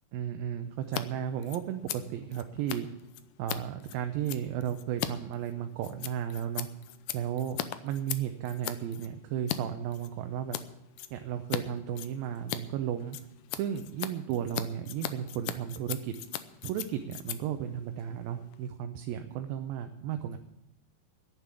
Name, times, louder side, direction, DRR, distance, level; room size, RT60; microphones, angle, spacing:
voice 1, 0.1-2.9 3.4-6.7 7.1-7.6 7.8-10.6 11.1-13.2 13.5-16.2 16.6-20.4, right 9 dB, 80° right, 6 dB, 2.5 m, -34 dB
Scissors, 0.8-1.0 1.3-9.6 9.9-10.6 11.0-11.6 11.9-18.7, left 13 dB, 80° left, 1.9 m, -39 dB
10.5 x 9.1 x 9.6 m, 0.86 s
omnidirectional pair, 4.3 m